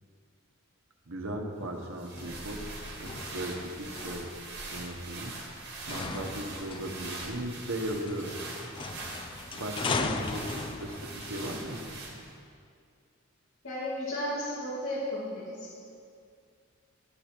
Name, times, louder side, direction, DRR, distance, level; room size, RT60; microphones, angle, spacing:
voice 1, 1.1-2.6 3.0-4.3 4.7-8.4 9.5-11.8, right 1 dB, 70° right, 3 dB, 1.1 m, -37 dB
sound 1, 1.8-12.4, right 2 dB, 55° right, 1.7 m, -42 dB
sound 2, 2.2-12.3, left 3 dB, 25° left, 0.4 m, -39 dB
voice 2, 13.6-15.8, left 1 dB, 65° left, -9 dB, 2.5 m, -34 dB
12.5 x 6.8 x 4.5 m, 2.3 s
head